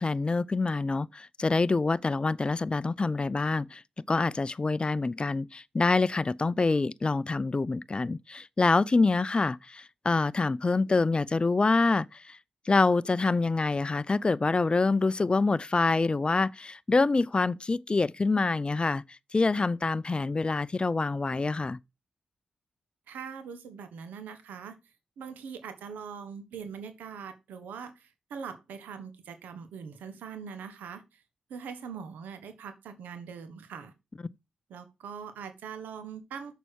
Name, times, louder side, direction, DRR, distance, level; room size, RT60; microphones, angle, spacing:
voice 1, 0.0-3.8 4.1-12.4 12.7-19.0 19.3-21.8, left 3 dB, 35° left, 0.5 m, -26 dB
voice 2, 23.1-24.8 25.2-31.2 31.5-33.9 34.7-36.6, right 6 dB, 90° right, 1.3 m, -42 dB
6.8 x 5.7 x 6.3 m
supercardioid pair, 45°, 3 cm